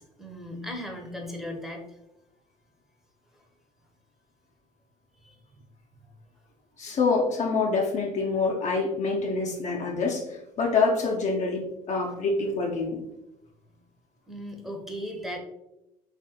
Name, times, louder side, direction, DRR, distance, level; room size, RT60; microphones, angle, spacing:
voice 1, 0.0-1.8 5.2-5.3 14.3-15.4, equal, ahead, 0 dB, 0.7 m, -37 dB
voice 2, 6.8-13.0, left 4 dB, 40° left, 0 dB, 0.6 m, -26 dB
3.4 x 2.4 x 2.8 m, 0.88 s
hypercardioid pair, 60°, 19 cm